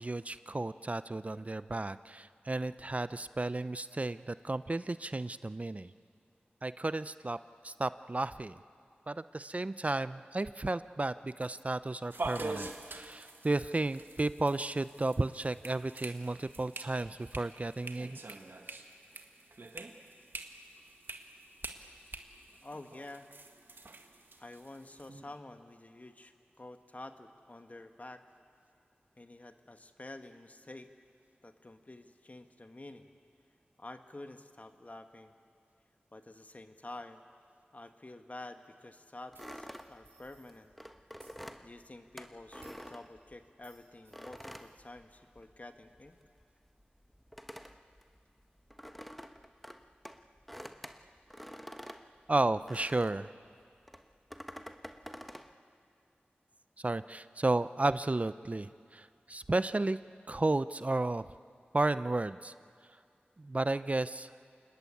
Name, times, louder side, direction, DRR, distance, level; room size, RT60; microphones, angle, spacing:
voice 1, 0.0-5.9 6.6-7.4 7.6-8.5 9.1-18.2 52.3-53.3 56.8-60.0 60.3-61.2 61.7-62.5 63.4-64.3, right 2 dB, 35° right, 14 dB, 0.5 m, -33 dB
sound 1, 12.1-25.4, right 3 dB, 65° right, 1.7 m, -45 dB
voice 2, 22.6-23.3 24.4-28.2 29.2-30.9 31.4-33.1 33.8-35.3 36.1-37.2 37.7-40.7 41.6-46.2, left 2 dB, 40° left, 7 dB, 1.6 m, -49 dB
sound 2, 39.3-43.6 44.1-45.6 45.9-53.3 53.9-55.5, equal, ahead, 1.3 m, -48 dB
sound 3, 39.3-40.7 41.1-41.4 42.6-42.9 43.6-44.8, right 3 dB, 85° right, 5.2 m, -61 dB
27.5 x 20.0 x 8.5 m, 2.3 s
cardioid pair, 45°, 4 cm